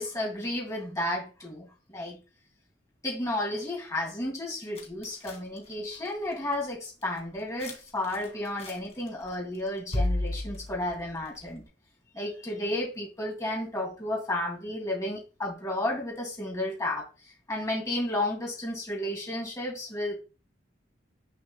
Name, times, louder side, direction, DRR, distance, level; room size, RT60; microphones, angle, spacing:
voice 1, 0.0-2.2 3.0-11.6 12.1-17.1 17.5-20.2, left 1 dB, 20° left, 2.3 m, -32 dB
sound 1, 4.8-6.2 6.6-6.7 7.0-7.7 8.0-9.3 9.5-11.6, left 1 dB, 35° left, 2.1 m, -33 dB
10.0 x 5.1 x 2.2 m
head